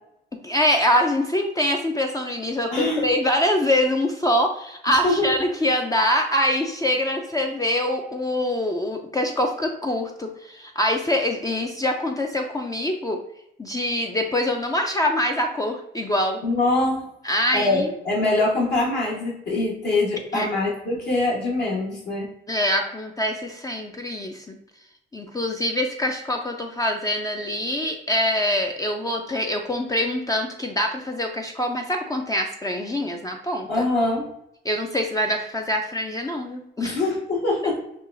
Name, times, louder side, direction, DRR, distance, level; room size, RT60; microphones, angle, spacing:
voice 1, 0.4-13.2 13.6-16.4 17.2-17.9 20.3-20.5 22.5-24.6 25.1-33.7 34.6-37.0, left 1 dB, 20° left, 2 dB, 0.4 m, -24 dB
voice 2, 2.7-3.1 4.9-5.3 16.4-17.0 17.5-22.3 33.7-34.3 36.8-37.8, left 2 dB, 60° left, -5 dB, 1.3 m, -23 dB
5.5 x 2.3 x 2.5 m, 0.79 s
cardioid pair, 90°, 20 cm